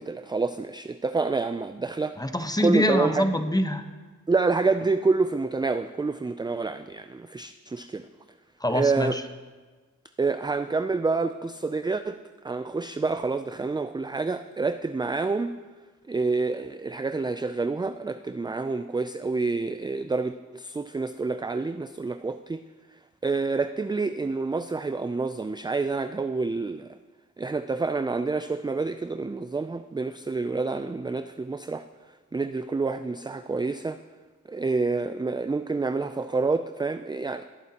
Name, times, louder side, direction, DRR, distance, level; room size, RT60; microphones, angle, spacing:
voice 1, 0.0-2.1 2.6-3.3 4.3-8.1 8.7-9.2 10.2-12.2 12.4-15.5 16.1-22.6 23.2-26.9 27.4-31.8 32.3-34.0 34.5-37.4, right 3 dB, 15° right, 9 dB, 0.3 m, -28 dB
voice 2, 2.2-3.8 8.6-9.2, left 1 dB, 10° left, 8 dB, 1.0 m, -25 dB
18.5 x 9.0 x 2.9 m, 1.3 s
cardioid pair, 50°, 33 cm